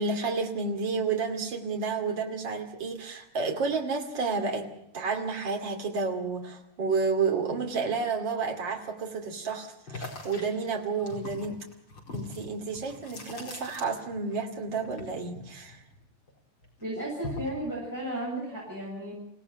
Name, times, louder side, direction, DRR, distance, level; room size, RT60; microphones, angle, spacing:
voice 1, 0.0-4.7 4.9-11.6 12.1-15.8, right 4 dB, 60° right, 3 dB, 3.3 m, -30 dB
sound 1, 9.9-14.4 14.6-16.3 16.6-17.6, left 2 dB, 60° left, 5.4 m, -41 dB
voice 2, 16.8-19.1, right 1 dB, 10° right, -4 dB, 7.2 m, -34 dB
28.0 x 18.0 x 5.9 m, 0.76 s
omnidirectional pair, 2.3 m